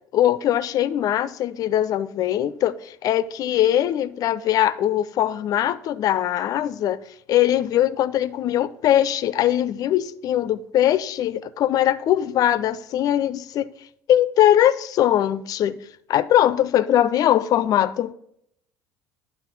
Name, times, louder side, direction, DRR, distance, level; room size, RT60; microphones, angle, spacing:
voice 1, 0.1-7.0 7.3-13.7 14.1-15.8 16.1-18.1, left 11 dB, 45° left, 0.4 m, -21 dB
9.8 x 3.3 x 4.5 m
figure-of-eight pair, 60°, 9 cm